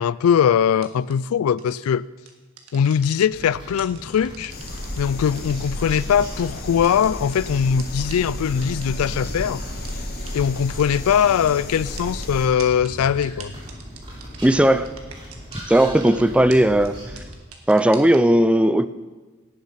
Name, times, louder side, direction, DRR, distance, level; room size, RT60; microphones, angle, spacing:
voice 1, 0.0-2.0 2.7-4.5 5.0-9.6 10.3-13.5, left 8 dB, 85° left, 0.3 m, -21 dB
sound 1, 0.8-1.1 1.6-1.8 2.2-3.4 3.8-5.0 5.4-7.4 7.8-7.9 8.1-8.2 8.6-9.1 9.4-9.5 9.8-9.9 10.3-10.4 10.6-11.5 12.0-15.6 15.8-16.2 16.5-16.6 16.8-16.9 17.2-18.2, right 8 dB, 85° right, 1.7 m, -42 dB
sound 2, 3.3-17.3, equal, 25° right, 3.5 m, -39 dB
sound 3, 4.5-12.5, left 1 dB, 45° left, 1.7 m, -33 dB
voice 2, 14.4-14.9 15.7-17.0 17.7-18.9, right 1 dB, 5° right, 0.4 m, -16 dB
17.5 x 7.3 x 5.6 m
head